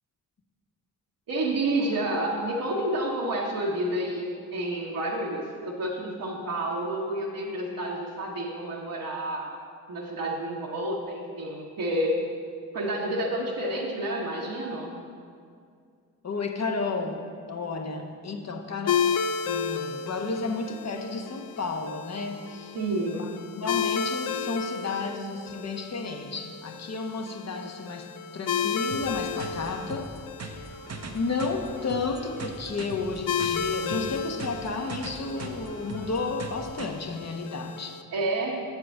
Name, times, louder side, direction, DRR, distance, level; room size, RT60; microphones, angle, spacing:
voice 1, 1.3-9.6 9.9-12.2 12.7-15.0 22.7-23.4 38.1-38.6, right 1 dB, 65° right, -5 dB, 1.2 m, -29 dB
voice 2, 16.2-19.2 19.5-22.7 23.1-23.3 23.6-30.1 30.4-30.6 31.1-38.0, left 3 dB, 45° left, 3 dB, 1.1 m, -32 dB
sound 1, 18.9-38.0, left 7 dB, 70° left, 0.5 m, -33 dB
sound 2, 28.9-36.9, right 3 dB, 45° right, 0.8 m, -41 dB
7.4 x 4.8 x 7.0 m, 2.3 s
cardioid pair, 60°, 36 cm